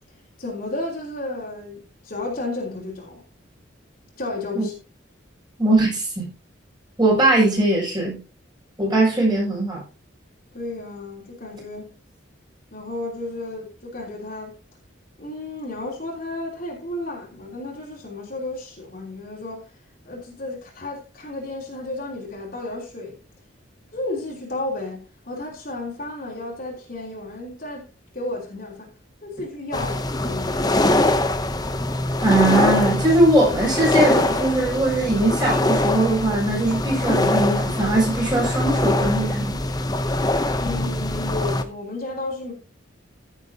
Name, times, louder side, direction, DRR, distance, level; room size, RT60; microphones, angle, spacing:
voice 1, 0.4-3.2 4.2-4.7 10.5-11.9 12.7-14.5 15.2-19.7 20.0-23.1 23.9-27.9 28.1-28.9 29.2-30.7 40.6-42.5, left 2 dB, 45° left, 3.3 m, -32 dB
voice 2, 5.6-6.3 7.0-8.2 8.8-9.8 32.2-39.6, right 1 dB, 20° right, 6.2 m, -20 dB
sound 1, 29.7-41.6, left 1 dB, 20° left, 0.7 m, -23 dB
15.0 x 7.3 x 2.8 m
head